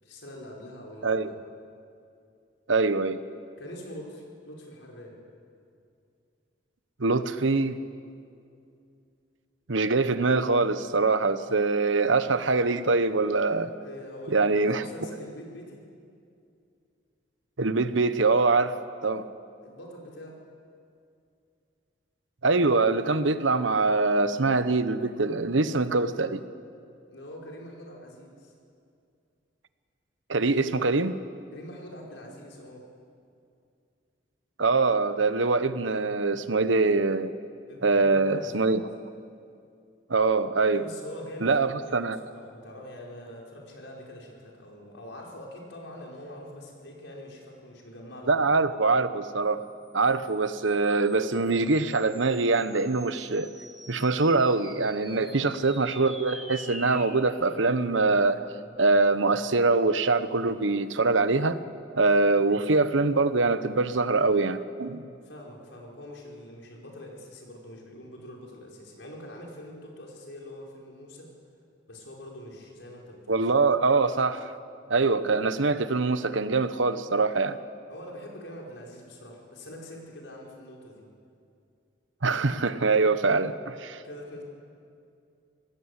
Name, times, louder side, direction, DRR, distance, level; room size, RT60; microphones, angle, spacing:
voice 1, 0.0-1.4 3.6-5.2 13.8-15.9 19.6-20.4 27.1-28.5 31.5-32.9 37.7-38.8 40.7-48.5 55.0-55.6 62.1-62.2 65.2-71.3 71.9-73.6 77.9-81.0 84.0-84.4, equal, 80° left, -1 dB, 5.2 m, -44 dB
voice 2, 2.7-3.2 7.0-7.8 9.7-13.7 14.3-14.9 17.6-18.8 19.0-19.3 22.4-26.4 30.3-31.2 34.6-37.3 37.8-38.9 40.1-40.8 41.4-42.2 48.3-49.6 49.9-53.5 53.9-58.5 58.8-61.6 61.9-65.1 73.3-74.5 74.9-77.6 82.2-84.0, right 3 dB, 90° right, 12 dB, 1.0 m, -24 dB
sound 1, 49.9-60.6, equal, ahead, 2.0 m, -48 dB
26.0 x 18.5 x 8.3 m, 2.4 s
head